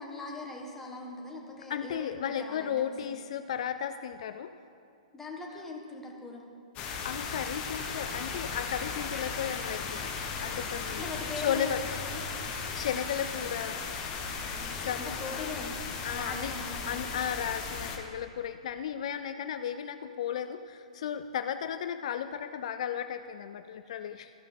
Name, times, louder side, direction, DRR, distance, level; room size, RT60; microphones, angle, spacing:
voice 1, 0.0-3.1 5.1-6.4 11.0-12.2 14.5-15.8 16.1-16.9, left 3 dB, 10° left, 0 dB, 1.3 m, -41 dB
voice 2, 1.7-4.5 6.8-11.8 12.5-13.8 14.8-15.6 16.0-16.5 16.9-24.3, left 9 dB, 60° left, 10 dB, 0.3 m, -35 dB
sound 1, 6.8-18.0, left 5 dB, 35° left, 1.1 m, -36 dB
14.0 x 5.5 x 4.2 m, 2.5 s
hypercardioid pair, 125°, 4 cm